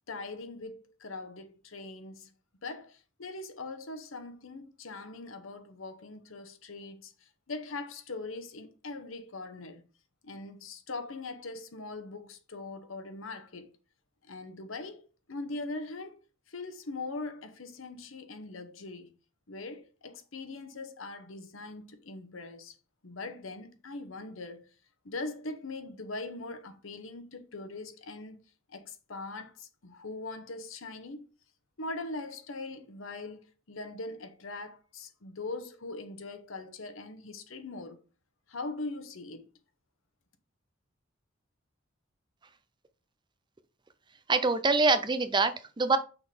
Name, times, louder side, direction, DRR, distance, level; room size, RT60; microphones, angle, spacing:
voice 1, 0.1-2.3 2.6-9.8 10.2-13.7 14.2-19.1 19.5-22.7 23.0-24.7 25.0-28.4 28.7-31.3 31.8-38.0 38.5-39.5, left 3 dB, 80° left, 1.0 m, -41 dB
voice 2, 44.3-46.0, right 3 dB, 25° right, 0.5 m, -25 dB
6.1 x 3.7 x 4.9 m
head